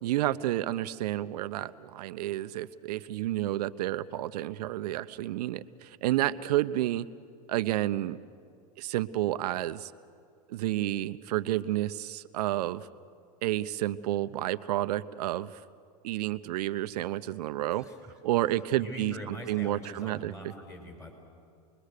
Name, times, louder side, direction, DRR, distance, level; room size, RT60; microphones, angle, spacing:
voice 1, 0.0-7.1 7.5-8.2 8.8-9.9 10.5-12.9 13.4-15.6 16.0-17.8 18.2-20.3, right 14 dB, 75° right, 13 dB, 0.8 m, -30 dB
voice 2, 17.7-18.1 18.7-21.1, equal, 15° left, 2 dB, 5.1 m, -43 dB
27.0 x 21.5 x 6.7 m, 2.4 s
hypercardioid pair, 115°, 20 cm